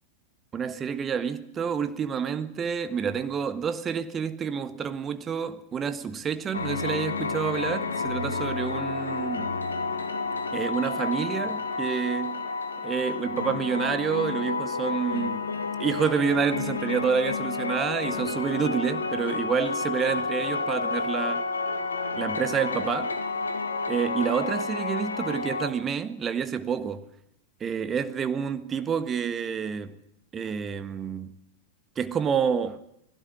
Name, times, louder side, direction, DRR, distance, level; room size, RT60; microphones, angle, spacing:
voice 1, 0.5-9.6 10.5-12.5 12.8-15.5 15.8-21.4 22.2-23.1 23.9-27.1 27.6-30.0 30.3-31.3 31.9-32.8, right 7 dB, 25° right, 1.5 m, -28 dB
sound 1, 6.5-25.7, left 4 dB, 75° left, 1.8 m, -30 dB
21.0 x 16.5 x 9.8 m
figure-of-eight pair, 90°, 0 cm